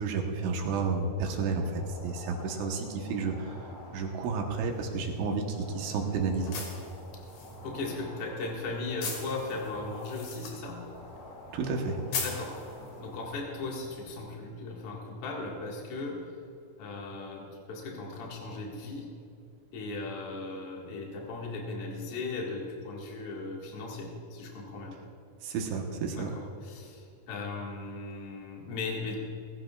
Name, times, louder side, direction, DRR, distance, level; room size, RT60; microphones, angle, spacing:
voice 1, 0.0-6.6 11.5-12.0 25.4-26.3, right 4 dB, 70° right, 2 dB, 3.3 m, -31 dB
sound 1, 1.4-14.4, left 1 dB, 40° left, 2.1 m, -49 dB
sound 2, 4.7-13.3, left 4 dB, 55° left, 3.9 m, -42 dB
voice 2, 7.6-10.9 12.2-12.6 13.0-16.3 16.8-19.1 19.7-25.0 26.2-29.1, left 3 dB, 75° left, -2 dB, 1.3 m, -37 dB
20.5 x 15.5 x 2.4 m, 2.5 s
omnidirectional pair, 6.0 m